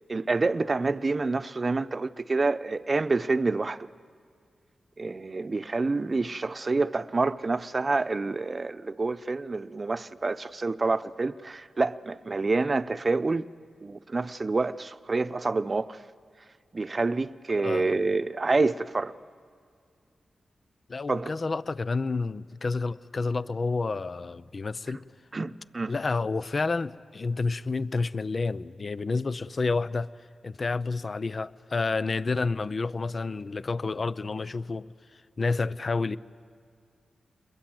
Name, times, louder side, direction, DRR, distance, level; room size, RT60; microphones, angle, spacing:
voice 1, 0.1-3.9 5.0-13.5 13.8-16.0 16.7-19.1 21.1-21.3 25.3-25.9, right 3 dB, 45° right, 0.8 m, -27 dB
voice 2, 17.6-18.0 20.9-25.0 25.9-30.1 30.4-34.9 35.4-36.2, left 3 dB, 50° left, 0.7 m, -29 dB
28.5 x 22.0 x 7.9 m
cardioid pair, 45°, 0 cm